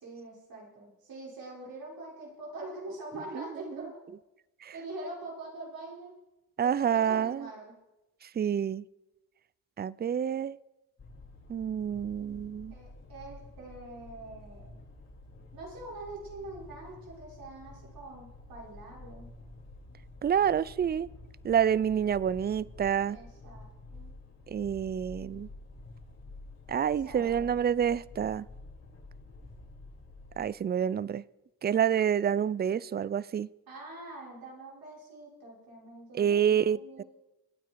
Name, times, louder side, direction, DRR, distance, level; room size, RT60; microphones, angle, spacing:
voice 1, 0.0-4.0 4.7-6.1 6.6-7.7 12.7-14.8 15.5-19.3 23.0-24.1 26.9-27.5 33.7-37.1, right 2 dB, 70° right, 6.0 m, -44 dB
voice 2, 6.6-7.5 8.2-8.8 9.8-10.6 11.5-12.7 20.2-21.1 21.4-23.2 24.5-25.5 26.7-28.5 30.4-31.2 31.6-33.5 36.1-37.0, right 8 dB, 25° right, 0.4 m, -28 dB
sound 1, 11.0-30.4, left 2 dB, 45° left, 4.8 m, -49 dB
24.0 x 9.2 x 4.6 m
cardioid pair, 75°, 37 cm